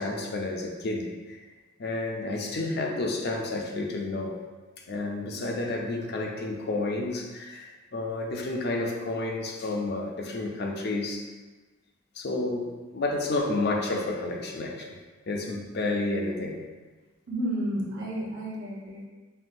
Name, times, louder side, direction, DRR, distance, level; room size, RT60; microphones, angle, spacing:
voice 1, 0.0-1.4 1.8-4.4 4.8-11.3 12.2-15.0 15.3-16.6, left 2 dB, 50° left, 1 dB, 0.4 m, -30 dB
voice 2, 17.3-19.1, equal, 55° right, -5 dB, 0.8 m, -31 dB
5.4 x 2.2 x 2.6 m, 1.3 s
head